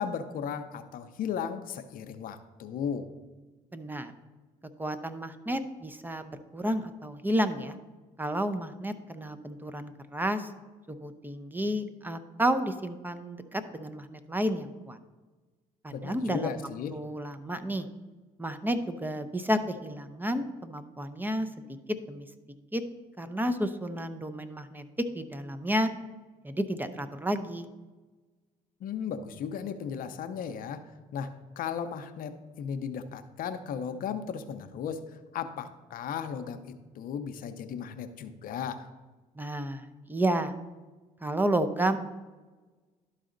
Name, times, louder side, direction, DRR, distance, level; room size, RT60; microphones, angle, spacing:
voice 1, 0.0-3.1 15.9-17.0 28.8-30.8 31.1-36.6 37.0-38.9, left 7 dB, 70° left, 9 dB, 0.6 m, -35 dB
voice 2, 3.7-4.1 4.8-7.8 8.2-10.5 10.9-15.0 15.8-16.6 16.9-17.9 18.4-21.5 22.1-22.3 22.7-22.8 23.2-25.9 26.4-27.7 39.4-40.5 41.2-42.0, right 1 dB, 10° right, 10 dB, 0.7 m, -31 dB
12.0 x 4.1 x 3.9 m, 1.2 s
supercardioid pair, 70°, 15 cm